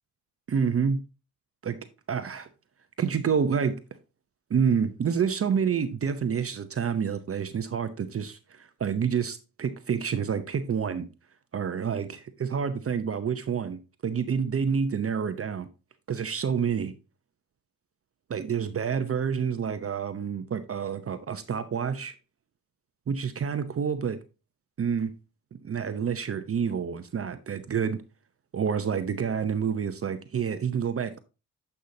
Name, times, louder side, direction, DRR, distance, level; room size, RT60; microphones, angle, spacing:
voice 1, 0.5-1.0 1.6-1.8 2.1-2.5 3.0-3.8 4.5-11.1 11.5-15.7 16.1-16.9 18.3-22.1 23.1-24.2 24.8-25.1 25.5-28.0 28.5-31.2, right 7 dB, 35° right, 0.8 m, -28 dB
10.0 x 5.6 x 2.8 m
supercardioid pair, 65°, 40 cm